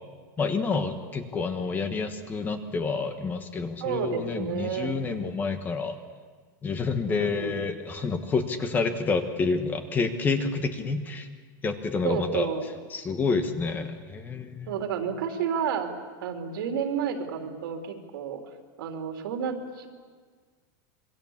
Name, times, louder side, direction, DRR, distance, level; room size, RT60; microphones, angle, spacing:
voice 1, 0.4-6.0 6.6-11.3 11.6-12.5 12.9-14.8, left 4 dB, 15° left, 8 dB, 1.4 m, -28 dB
voice 2, 3.8-4.9 7.1-7.6 12.0-12.7 14.7-15.9 16.2-18.4 18.8-19.9, right 7 dB, 85° right, 4 dB, 3.7 m, -30 dB
26.5 x 23.0 x 7.4 m, 1.6 s
supercardioid pair, 175°, 11 cm